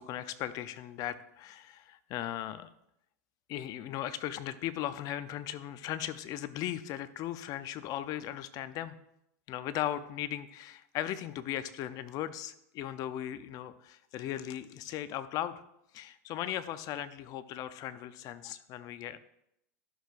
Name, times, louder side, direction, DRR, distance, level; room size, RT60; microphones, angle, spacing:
voice 1, 0.0-2.7 3.5-9.0 9.5-15.6 15.9-19.2, left 12 dB, 45° left, 13 dB, 0.6 m, -37 dB
12.5 x 6.4 x 2.5 m, 0.79 s
hypercardioid pair, 105°, 9 cm